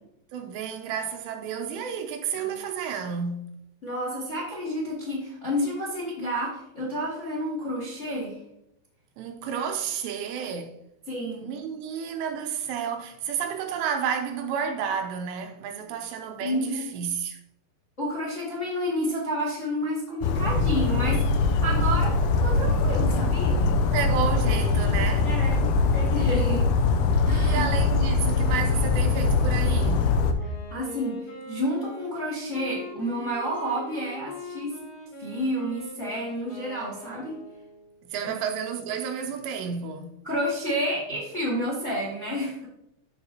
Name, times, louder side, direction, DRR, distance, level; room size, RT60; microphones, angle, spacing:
voice 1, 0.3-3.6 9.2-10.8 11.4-17.4 23.9-25.3 27.4-30.2 38.1-40.2, right 7 dB, 80° right, 2.7 m, -31 dB
voice 2, 3.8-8.4 11.1-11.5 16.4-16.9 18.0-22.2 22.4-23.8 25.2-26.7 27.2-27.6 30.4-34.7 35.2-37.3 38.2-38.4 40.2-42.7, equal, 35° left, 1.2 m, -30 dB
Bird vocalization bird call bird song, 20.2-30.3, left 3 dB, 90° left, 3.0 m, -22 dB
Wind instrument woodwind instrument, 30.3-38.1, left 2 dB, 60° left, 2.5 m, -41 dB
13.5 x 4.7 x 2.8 m
omnidirectional pair, 5.2 m